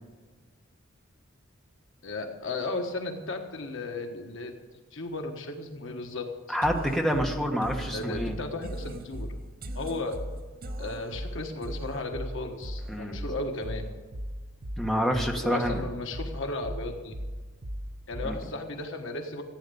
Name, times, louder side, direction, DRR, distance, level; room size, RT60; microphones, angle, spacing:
voice 1, 2.0-4.5 4.9-6.6 7.9-9.3 9.7-10.2 10.8-13.9 15.4-17.1 18.1-19.4, left 2 dB, 65° left, 4 dB, 1.4 m, -35 dB
voice 2, 6.5-8.4 12.9-13.2 14.8-15.8 18.2-18.4, equal, ahead, 2 dB, 1.4 m, -27 dB
sound 1, 6.6-18.6, equal, 45° right, 0.9 m, -38 dB
15.0 x 9.3 x 6.9 m, 1.3 s
head